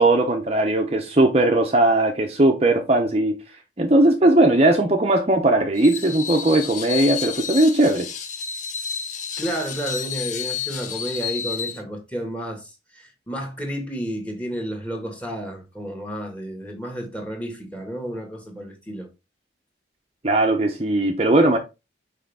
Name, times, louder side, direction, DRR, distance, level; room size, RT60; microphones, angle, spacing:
voice 1, 0.0-3.4 3.8-8.1 20.2-21.6, right 2 dB, 30° right, 0.8 m, -18 dB
Screech, 5.8-11.8, left 7 dB, 40° left, 0.8 m, -31 dB
voice 2, 9.4-19.1, equal, 5° left, 1.8 m, -31 dB
6.3 x 5.0 x 3.6 m
head